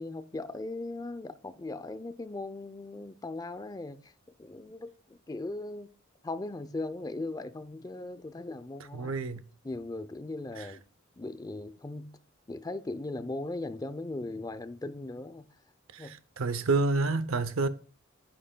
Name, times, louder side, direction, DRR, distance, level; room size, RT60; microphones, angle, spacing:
voice 1, 0.0-4.1 4.4-5.9 6.2-9.2 9.6-10.8 11.2-12.2 12.5-15.5 16.0-16.2, left 2 dB, 20° left, 0.5 m, -38 dB
voice 2, 8.9-9.4 15.9-17.7, right 3 dB, 85° right, 0.6 m, -29 dB
10.0 x 7.7 x 2.2 m
head